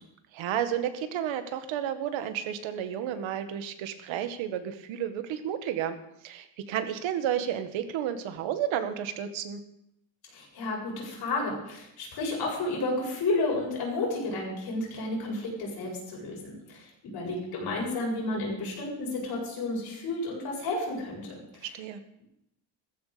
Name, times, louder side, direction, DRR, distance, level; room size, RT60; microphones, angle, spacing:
voice 1, 0.3-6.0 6.2-9.6 21.7-22.0, right 10 dB, 75° right, 9 dB, 1.8 m, -32 dB
voice 2, 10.3-21.7, left 2 dB, 50° left, -2 dB, 7.9 m, -32 dB
17.0 x 15.0 x 5.2 m, 0.79 s
cardioid pair, 175°, 46 cm